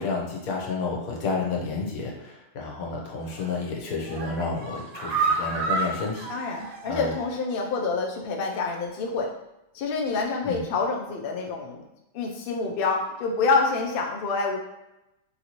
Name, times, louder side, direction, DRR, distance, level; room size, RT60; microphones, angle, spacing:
voice 1, 0.0-6.6 6.9-7.1 10.5-10.7, left 3 dB, 80° left, -1 dB, 1.1 m, -31 dB
sound 1, 3.2-3.6 4.0-7.4 7.7-7.8 8.2-8.3, right 4 dB, 85° right, 1.1 m, -30 dB
voice 2, 6.3-9.3 9.7-11.8 12.1-14.6, left 4 dB, 65° left, 1 dB, 0.6 m, -27 dB
3.0 x 2.6 x 2.9 m, 0.90 s
omnidirectional pair, 1.5 m